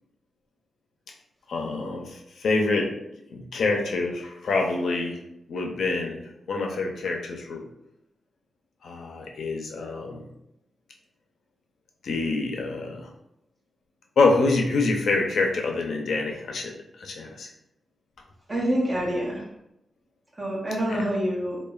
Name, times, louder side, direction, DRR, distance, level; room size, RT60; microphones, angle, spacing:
voice 1, 1.5-2.9 3.3-5.2 5.5-6.2 6.5-7.6 8.8-10.3 12.0-13.1 14.2-17.5 20.9-21.0, left 3 dB, 70° left, 2 dB, 0.4 m, -26 dB
voice 2, 18.5-19.5 20.4-21.6, equal, 25° right, -3 dB, 0.7 m, -26 dB
3.0 x 2.1 x 2.3 m, 0.82 s
wide cardioid pair, 155°, 0 cm